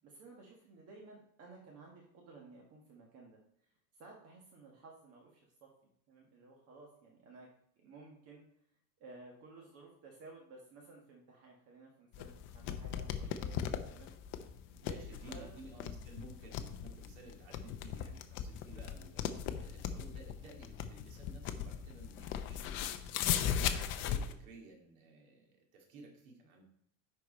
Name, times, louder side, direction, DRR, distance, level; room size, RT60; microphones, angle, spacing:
voice 1, 0.0-5.7 6.1-7.5 7.8-8.4 9.0-14.1 14.6-15.6, right 3 dB, 35° right, -1 dB, 1.5 m, -55 dB
sound 1, 12.1-24.3, left 9 dB, 30° left, 0.5 m, -38 dB
voice 2, 14.8-22.7 23.0-26.6, right 3 dB, 80° right, 1 dB, 2.5 m, -55 dB
10.0 x 4.6 x 4.2 m, 0.69 s
supercardioid pair, 160°, 42 cm